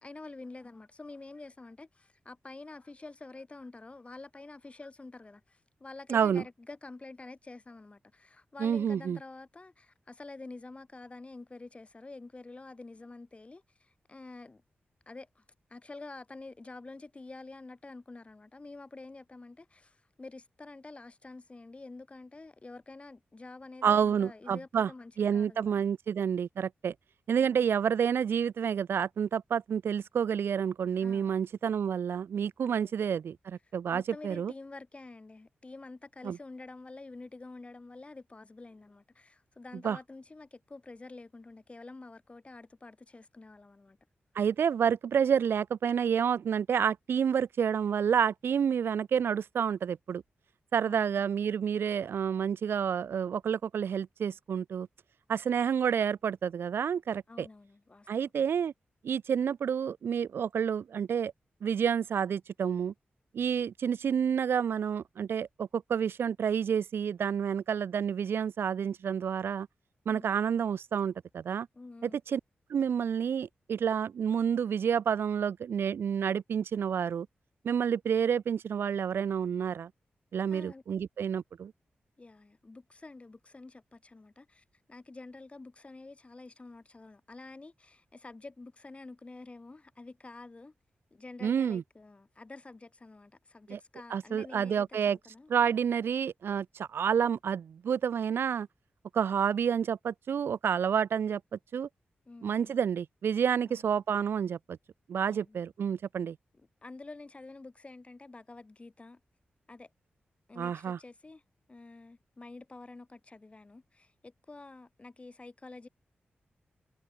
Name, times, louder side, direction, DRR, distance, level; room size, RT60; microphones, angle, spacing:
voice 1, 0.0-14.6 15.1-15.4 15.7-25.8 27.4-27.7 31.0-31.3 32.6-33.0 33.9-44.0 50.8-51.2 57.3-58.3 70.1-70.3 71.7-72.2 80.5-80.8 82.2-90.7 91.1-95.5 102.3-102.8 103.7-103.9 105.3-105.6 106.6-109.2 109.7-109.9 110.5-111.4 111.7-115.9, left 3 dB, 30° left, 5.9 m, -48 dB
voice 2, 6.1-6.4 8.6-9.2 23.8-24.9 25.2-26.9 27.3-34.5 36.2-36.4 39.8-40.0 44.3-50.2 50.7-54.9 55.3-57.5 58.1-58.7 59.0-61.3 61.6-62.9 63.3-69.7 70.1-71.7 72.0-72.4 72.7-77.3 77.6-79.9 80.3-81.7 91.4-91.8 93.7-93.8 94.1-95.2 95.5-98.7 99.1-101.9 102.4-104.8 105.1-106.4 110.6-111.0, right 7 dB, 80° right, 0.7 m, -29 dB
cardioid pair, 70°, 4 cm